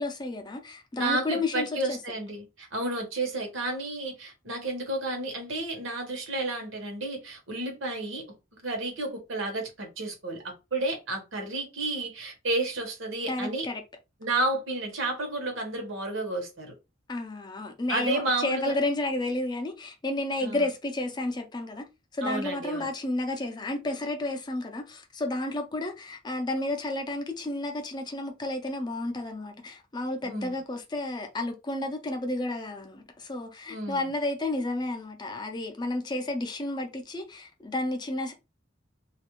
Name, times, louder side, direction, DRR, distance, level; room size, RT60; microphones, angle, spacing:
voice 1, 0.0-2.0 13.3-13.8 17.1-21.8 22.1-38.3, left 2 dB, 20° left, 0.4 m, -31 dB
voice 2, 1.0-8.2 8.6-13.7 14.2-16.7 17.9-18.7 20.4-20.7 22.2-22.9 30.2-30.6 33.7-34.1, right 2 dB, 80° right, 0.9 m, -31 dB
2.4 x 2.1 x 2.9 m
head